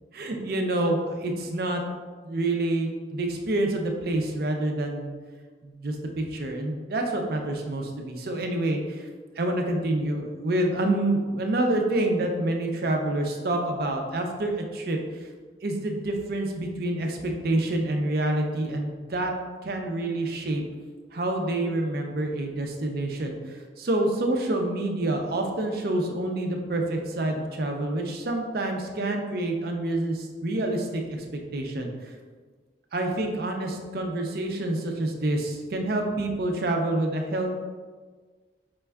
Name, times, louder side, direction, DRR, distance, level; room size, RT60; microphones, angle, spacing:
voice 1, 0.1-1.8 2.2-5.1 5.6-9.1 9.4-15.0 15.6-19.3 19.6-20.6 21.1-31.2 31.5-31.9 32.9-37.5, right 1 dB, 55° right, 3 dB, 0.5 m, -27 dB
5.1 x 2.3 x 3.3 m, 1.5 s
head